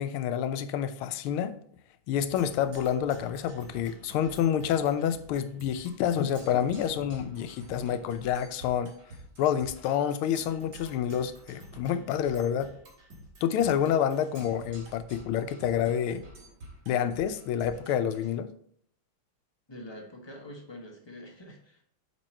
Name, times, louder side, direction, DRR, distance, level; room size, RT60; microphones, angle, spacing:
voice 1, 0.0-1.5 2.1-8.9 9.4-12.7 13.4-16.2 16.9-18.5, left 9 dB, 85° left, 11 dB, 1.5 m, -28 dB
Percussion, 2.3-18.3, right 1 dB, 50° right, 2.2 m, -49 dB
voice 2, 19.7-21.8, left 1 dB, 30° left, 1 dB, 0.5 m, -45 dB
8.2 x 3.7 x 4.3 m, 0.66 s
omnidirectional pair, 2.3 m